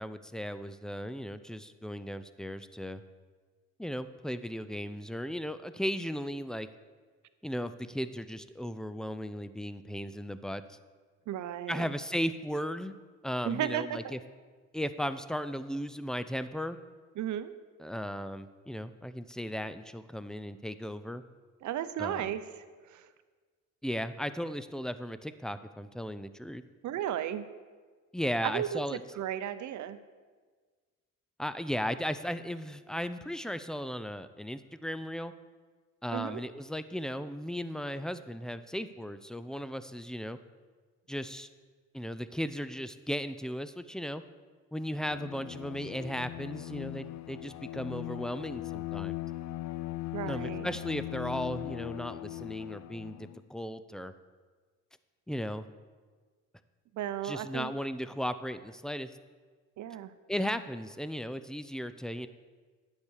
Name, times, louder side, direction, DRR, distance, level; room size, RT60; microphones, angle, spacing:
voice 1, 0.0-3.0 3.8-6.7 7.4-10.8 11.7-12.9 13.2-14.2 14.7-16.8 17.8-21.2 22.0-22.3 23.8-26.6 28.1-29.0 31.4-35.3 36.0-40.4 41.1-41.5 41.9-44.2 44.7-49.2 50.3-54.1 55.3-55.7 57.2-59.1 60.3-62.3, equal, ahead, 12 dB, 0.5 m, -36 dB
voice 2, 11.3-11.9 13.4-14.1 17.2-17.5 21.6-22.4 22.9-23.1 26.8-27.5 28.4-30.0 36.1-36.4 50.1-50.7 56.9-57.7 59.8-60.1, right 11 dB, 70° right, 12 dB, 0.8 m, -34 dB
Bowed string instrument, 44.9-53.4, left 16 dB, 70° left, 0.5 m, -39 dB
10.5 x 8.3 x 6.4 m, 1.5 s
cardioid pair, 90°, 30 cm